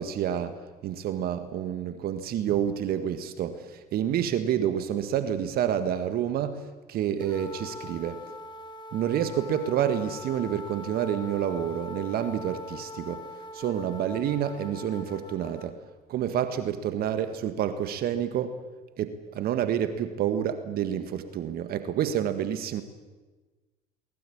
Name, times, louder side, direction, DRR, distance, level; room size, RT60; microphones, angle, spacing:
voice 1, 0.0-8.2 8.9-13.3 13.5-15.8 16.1-18.6 19.0-22.8, right 9 dB, 55° right, 10 dB, 1.7 m, -28 dB
sound 1, 7.2-15.7, left 2 dB, 25° left, 3.3 m, -42 dB
22.5 x 20.5 x 8.7 m, 1.3 s
hypercardioid pair, 75°, 19 cm